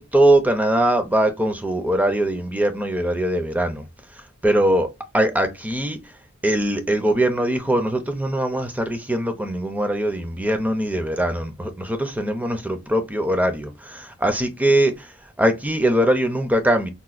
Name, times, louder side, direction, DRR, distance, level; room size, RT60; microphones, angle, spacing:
voice 1, 0.0-3.8 4.4-4.9 5.1-6.0 6.4-16.9, right 1 dB, 5° right, 0.4 m, -21 dB
4.1 x 2.2 x 2.4 m
head